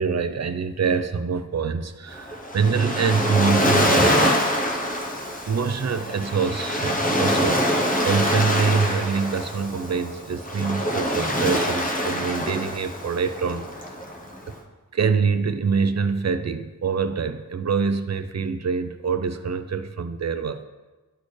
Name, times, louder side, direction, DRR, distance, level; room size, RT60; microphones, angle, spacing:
voice 1, 0.0-4.5 5.5-7.6 8.0-13.7 14.5-14.6 14.9-20.6, right 5 dB, 55° right, 11 dB, 0.5 m, -25 dB
Waves surf, 2.1-14.5, equal, 25° left, 1.0 m, -24 dB
12.0 x 4.2 x 3.2 m, 1.2 s
wide cardioid pair, 70°, 33 cm